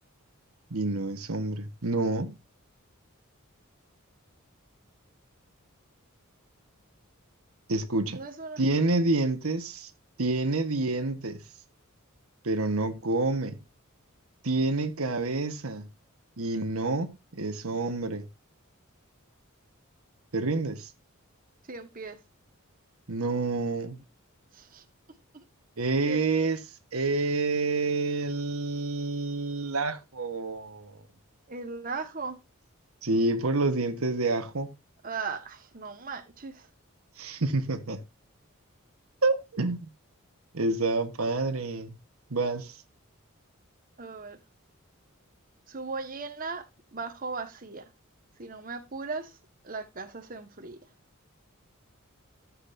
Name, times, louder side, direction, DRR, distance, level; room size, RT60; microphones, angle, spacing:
voice 1, 0.7-2.3 7.7-8.2 8.6-9.9 10.2-11.4 12.4-13.6 14.4-15.9 16.4-18.3 20.3-20.9 23.1-24.0 25.8-26.6 26.9-31.0 33.0-34.7 37.2-38.0 39.2-39.9 40.5-42.0 42.3-42.8, right 3 dB, 80° right, 1.3 m, -28 dB
voice 2, 8.1-8.6 21.6-22.2 24.5-24.8 25.3-25.4 26.0-26.2 31.5-32.4 35.0-36.7 44.0-44.4 45.7-47.9 48.4-49.4 49.6-50.8, right 4 dB, 40° right, 1.4 m, -37 dB
13.5 x 7.7 x 2.6 m
head